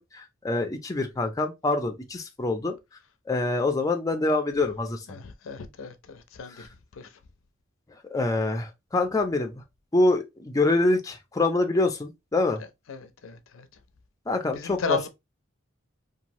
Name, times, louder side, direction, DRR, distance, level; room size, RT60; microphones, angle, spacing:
voice 1, 0.1-2.7 3.3-5.0 6.6-6.7 8.1-9.6 9.9-12.6 14.3-15.0, left 2 dB, 15° left, 0.4 m, -25 dB
voice 2, 5.1-6.7 6.9-7.1 12.9-13.7 14.5-15.1, left 5 dB, 80° left, 0.5 m, -34 dB
3.0 x 2.3 x 2.6 m
head